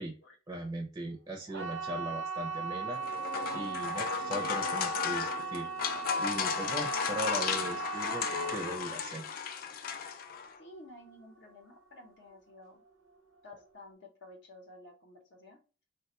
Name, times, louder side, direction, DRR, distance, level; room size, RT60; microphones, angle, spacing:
voice 1, 0.5-3.0 3.5-5.7 6.2-9.3, right 1 dB, 20° right, 2 dB, 0.5 m, -39 dB
sound 1, 1.5-12.3 12.6-13.2 13.6-13.7, right 5 dB, 75° right, 0.6 m, -39 dB
sound 2, 2.9-10.6, left 7 dB, 50° left, 0.3 m, -34 dB
voice 2, 10.6-12.8 13.4-15.6, left 1 dB, 65° left, 2 dB, 0.8 m, -52 dB
3.3 x 2.2 x 2.8 m, 0.35 s
head